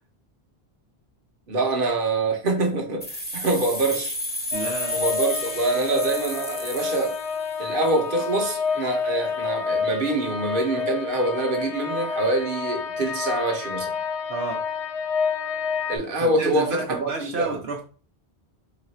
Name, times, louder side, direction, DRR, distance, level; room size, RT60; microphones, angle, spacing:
voice 1, 1.5-4.1 4.9-7.2 7.6-13.9 15.9-17.6, right 2 dB, 55° right, 1.1 m, -25 dB
sound 1, 3.0-7.8, left 1 dB, 10° left, 0.7 m, -32 dB
sound 2, 4.5-16.0, left 5 dB, 45° left, 0.4 m, -29 dB
voice 2, 4.5-5.0 14.3-14.6 16.2-17.8, right 4 dB, 75° right, 1.0 m, -31 dB
3.9 x 2.5 x 4.2 m
omnidirectional pair, 1.1 m